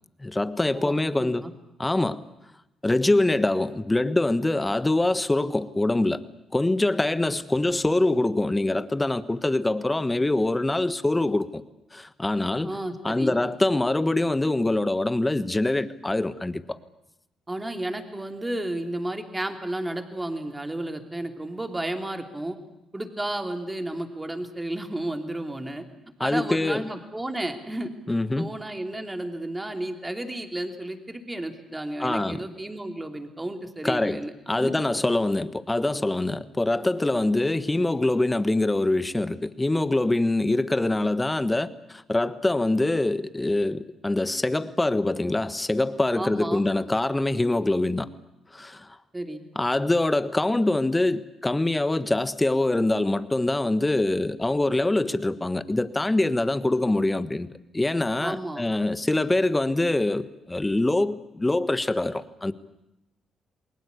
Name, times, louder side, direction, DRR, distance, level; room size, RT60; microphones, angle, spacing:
voice 1, 0.2-1.4 1.8-2.2 2.8-6.2 6.5-11.6 11.9-12.7 13.0-16.8 26.2-26.9 28.1-28.5 32.0-32.4 33.8-48.1 48.5-49.0 49.5-57.5 57.7-62.5, left 2 dB, 15° left, 1.4 m, -24 dB
voice 2, 1.2-1.5 7.3-7.4 12.6-13.3 17.5-22.6 22.9-25.8 26.2-27.9 28.4-34.3 34.6-34.7 46.2-46.6 49.1-49.4 58.2-58.6, right 1 dB, 15° right, 3.1 m, -32 dB
29.0 x 20.5 x 8.4 m
cardioid pair, 90°, 0 cm